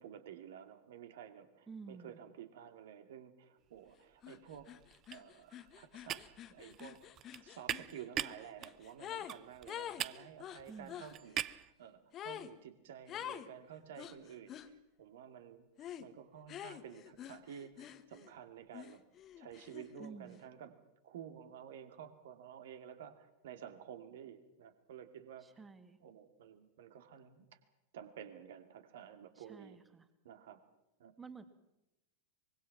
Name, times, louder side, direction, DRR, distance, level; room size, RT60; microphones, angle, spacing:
voice 1, 0.0-4.7 5.1-7.0 7.4-19.0 19.4-20.7 21.0-25.5 26.0-27.5 27.9-29.8 30.2-30.6 31.0-31.1, right 9 dB, 55° right, 9 dB, 2.5 m, -52 dB
voice 2, 1.7-2.2 10.7-11.0 20.0-20.4 25.4-26.0 29.4-30.1 31.2-31.4, right 5 dB, 10° right, 10 dB, 2.3 m, -51 dB
sound 1, 3.9-4.2 4.5-11.7, right 11 dB, 30° right, 0.7 m, -43 dB
sound 2, 4.2-4.4 4.7-9.4 9.7-11.1 12.1-12.5 13.1-13.5 14.0-14.7 15.8-16.1 16.5-18.3 18.7-20.1, left 11 dB, 30° left, 1.4 m, -47 dB
24.5 x 23.0 x 6.0 m, 0.91 s
figure-of-eight pair, 90°, 0 cm